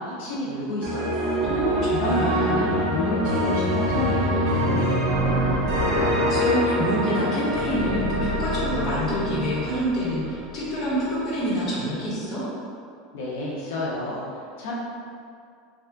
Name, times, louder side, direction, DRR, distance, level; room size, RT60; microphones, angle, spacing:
voice 1, 0.0-1.4 2.0-5.4 13.1-14.3 14.6-14.7, left 1 dB, 85° left, -6 dB, 0.8 m, -29 dB
sound 1, 0.8-10.9, equal, 45° right, 0.7 m, -25 dB
voice 2, 1.4-2.5 6.3-12.4, equal, 30° left, -9 dB, 1.1 m, -27 dB
3.4 x 2.3 x 3.5 m, 2.3 s
supercardioid pair, 160°, 0 cm